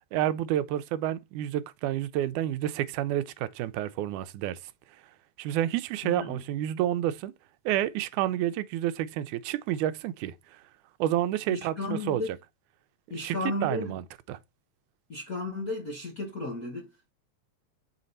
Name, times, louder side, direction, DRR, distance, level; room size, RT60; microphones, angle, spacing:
voice 1, 0.1-4.6 5.4-7.3 7.7-10.3 11.0-12.4 13.1-14.4, right 12 dB, 85° right, 2.1 m, -29 dB
voice 2, 6.0-6.4 11.5-12.3 13.1-13.9 15.1-17.1, left 2 dB, 50° left, 1.0 m, -34 dB
5.8 x 4.2 x 3.8 m
omnidirectional pair, 3.4 m